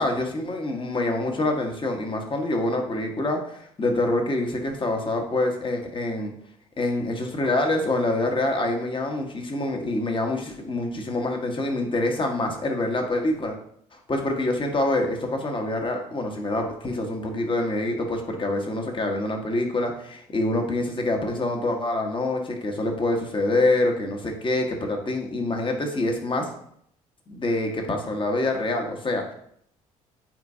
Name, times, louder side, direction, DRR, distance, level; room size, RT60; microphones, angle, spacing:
voice 1, 0.0-6.3 6.8-13.6 13.9-26.5 27.3-29.3, left 2 dB, 30° left, 3 dB, 1.5 m, -26 dB
9.1 x 4.5 x 2.8 m, 0.68 s
figure-of-eight pair, 50°, 18 cm